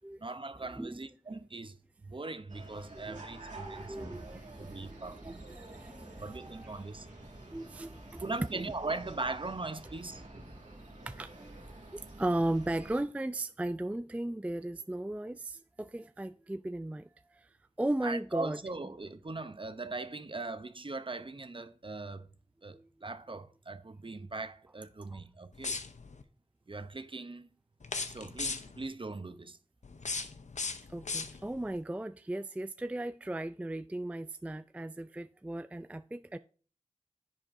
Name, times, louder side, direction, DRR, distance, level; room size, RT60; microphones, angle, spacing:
voice 1, 0.2-5.4 6.2-7.1 8.2-10.2 18.0-22.3 22.6-25.8 26.7-27.5 28.1-29.6, right 3 dB, 45° right, 0.6 m, -40 dB
sound 1, 2.5-13.0, right 2 dB, 85° right, 2.0 m, -49 dB
voice 2, 3.0-6.7 7.5-8.2 8.5-8.6 10.7-11.6 11.9-17.5 17.8-18.6 22.7-22.9 25.1-25.2 30.9-36.4, right 1 dB, 10° right, 0.3 m, -37 dB
sound 2, 25.5-26.2 27.8-28.9 29.8-31.7, left 4 dB, 75° left, 0.7 m, -38 dB
10.5 x 7.5 x 2.6 m
wide cardioid pair, 40°, 12 cm